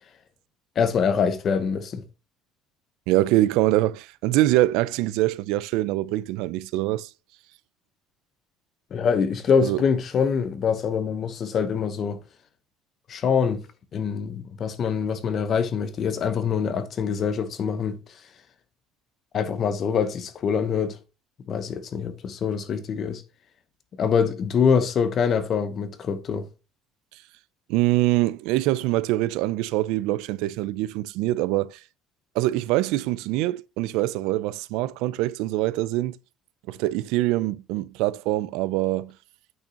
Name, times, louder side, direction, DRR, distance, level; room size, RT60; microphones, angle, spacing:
voice 1, 0.8-2.0 8.9-12.2 13.1-13.6 13.9-18.0 19.3-21.0 21.5-23.2 24.0-26.5, left 6 dB, 40° left, 1.0 m, -24 dB
voice 2, 3.1-7.1 9.6-9.8 27.7-31.8 32.3-36.2 36.7-39.1, right 16 dB, 85° right, 0.4 m, -24 dB
8.7 x 6.3 x 2.9 m
cardioid pair, 145°, 0 cm